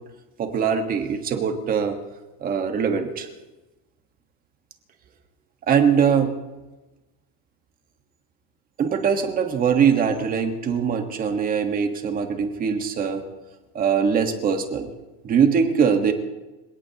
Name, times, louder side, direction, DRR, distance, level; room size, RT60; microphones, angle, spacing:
voice 1, 0.4-2.0 2.4-3.3 5.7-6.3 8.8-13.2 13.7-14.9 15.2-16.1, right 7 dB, 20° right, 5 dB, 1.4 m, -22 dB
27.5 x 17.0 x 2.9 m, 1.1 s
cardioid pair, 180°, 40 cm